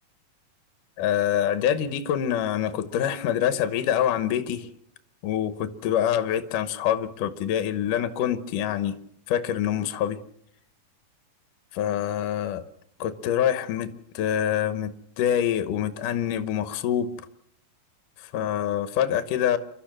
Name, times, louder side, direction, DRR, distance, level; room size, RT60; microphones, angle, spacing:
voice 1, 1.0-4.7 5.2-9.0 9.3-10.2 11.7-12.6 13.0-17.1 18.2-19.6, left 10 dB, 70° left, 2.5 m, -25 dB
29.0 x 13.0 x 7.5 m
omnidirectional pair, 4.1 m